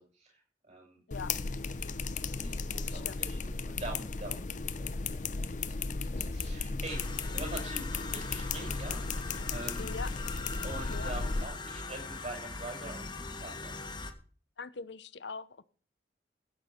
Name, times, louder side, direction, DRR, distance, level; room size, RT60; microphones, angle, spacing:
voice 1, 0.0-1.0 2.1-9.0 9.5-9.9 10.6-13.8, right 2 dB, 40° right, 1 dB, 6.3 m, -45 dB
sound 1, 1.1-11.5, left 4 dB, 45° left, 0.8 m, -35 dB
voice 2, 2.9-3.2 9.8-10.1 10.9-11.1 14.6-15.6, left 5 dB, 75° left, 15 dB, 0.8 m, -42 dB
sound 2, 6.9-14.1, left 3 dB, 25° left, 1.5 m, -42 dB
15.5 x 9.0 x 5.1 m, 0.41 s
head